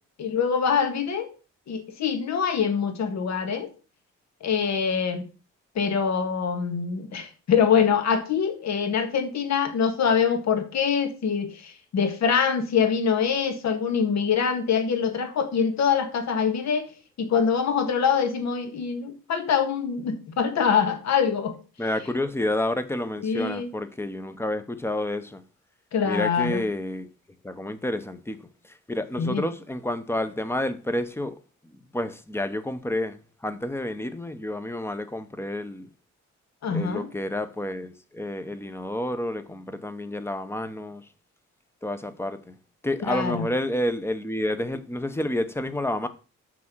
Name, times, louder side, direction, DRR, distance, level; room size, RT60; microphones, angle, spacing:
voice 1, 0.2-1.3 1.7-3.7 4.4-5.3 5.8-16.9 17.2-21.5 23.2-23.7 25.9-26.7 29.2-29.5 36.6-37.1 43.1-43.5, left 6 dB, 65° left, 1.7 m, -24 dB
voice 2, 21.8-25.4 26.0-27.1 27.4-28.4 28.6-31.4 31.9-35.9 36.7-41.1 41.8-42.6 42.8-46.1, left 1 dB, 10° left, 0.8 m, -29 dB
7.4 x 6.1 x 6.1 m
wide cardioid pair, 160°, 30 cm